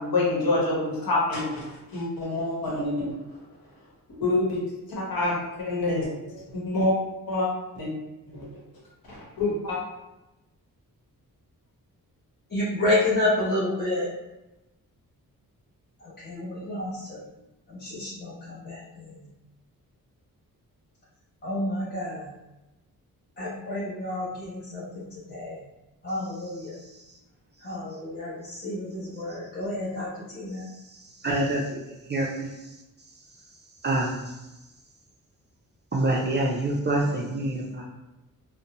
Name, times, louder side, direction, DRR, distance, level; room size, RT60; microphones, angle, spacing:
voice 1, 0.0-1.6 1.9-3.1 4.2-4.6 4.9-7.0 7.3-7.5 7.7-7.9 8.3-8.6 9.0-9.8, left 2 dB, 80° left, -5 dB, 1.0 m, -27 dB
voice 2, 12.5-14.1 16.2-17.2 17.7-19.1 21.4-22.3 23.4-25.6 26.0-26.7 27.6-30.7, left 1 dB, 30° left, -8 dB, 0.7 m, -29 dB
voice 3, 31.2-31.8 32.1-32.5 33.8-34.2 35.9-37.8, right 2 dB, 30° right, -2 dB, 0.4 m, -26 dB
2.5 x 2.0 x 2.8 m, 0.99 s
cardioid pair, 95°, 35 cm